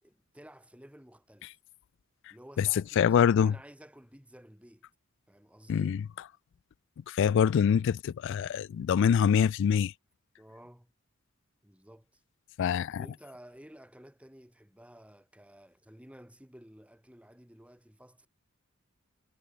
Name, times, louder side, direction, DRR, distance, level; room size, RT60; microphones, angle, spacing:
voice 1, 0.0-1.6 2.3-3.2 3.4-4.9 5.3-5.9 10.4-10.9 11.6-12.2 12.9-18.3, equal, 5° right, 3.2 m, -53 dB
voice 2, 3.0-3.5 5.7-6.0 7.1-9.9 12.6-13.1, left 7 dB, 60° left, 0.3 m, -25 dB
head